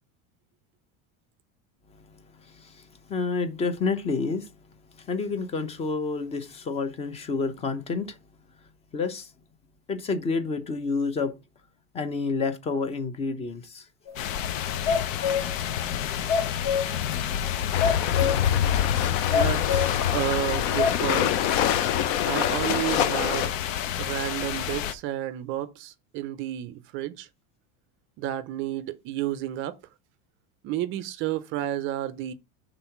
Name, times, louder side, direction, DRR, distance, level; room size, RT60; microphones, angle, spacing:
voice 1, 1.9-4.5 4.9-8.2 8.9-9.3 9.9-11.3 11.9-13.9, left 4 dB, 15° left, 0.6 m, -29 dB
sound 1, 14.1-14.2 14.6-15.5 16.0-17.0 17.4-17.5 17.8-18.5 18.9-19.0 19.3-20.0 20.5-21.0, left 6 dB, 35° left, 1.3 m, -26 dB
sound 2, 14.2-24.9, left 10 dB, 90° left, 0.9 m, -28 dB
sound 3, 17.7-23.5, left 10 dB, 55° left, 0.8 m, -27 dB
voice 2, 19.3-21.4 22.2-23.5 24.0-27.3 28.2-29.8 30.6-32.3, right 13 dB, 35° right, 0.5 m, -31 dB
6.1 x 3.8 x 5.7 m
cardioid pair, 170°, 38 cm